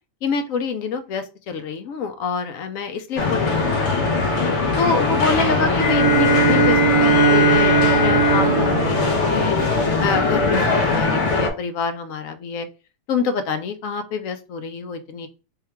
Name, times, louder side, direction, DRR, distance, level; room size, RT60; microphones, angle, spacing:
voice 1, 0.2-4.2 4.8-9.6 10.0-12.7 13.1-15.3, left 5 dB, 80° left, 9 dB, 1.0 m, -26 dB
sound 1, 3.2-11.5, left 3 dB, 60° left, 1.1 m, -21 dB
Bowed string instrument, 5.7-10.2, right 2 dB, 30° left, 1.1 m, -19 dB
3.6 x 2.3 x 4.2 m, 0.33 s
omnidirectional pair, 1.4 m